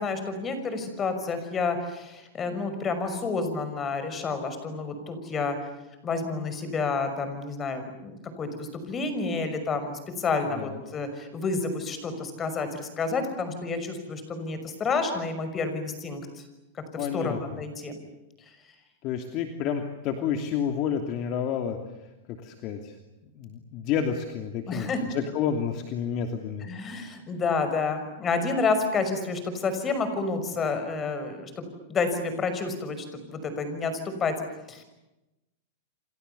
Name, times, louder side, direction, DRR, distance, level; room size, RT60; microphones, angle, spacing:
voice 1, 0.0-5.6 6.0-16.4 16.7-18.0 24.7-25.0 26.7-34.3 34.7-34.8, left 4 dB, 20° left, 9 dB, 5.9 m, -30 dB
voice 2, 17.0-17.6 19.0-21.8 22.3-23.0 23.3-26.7, left 8 dB, 45° left, 5 dB, 2.9 m, -30 dB
29.5 x 26.0 x 7.0 m, 0.97 s
supercardioid pair, 140°, 0 cm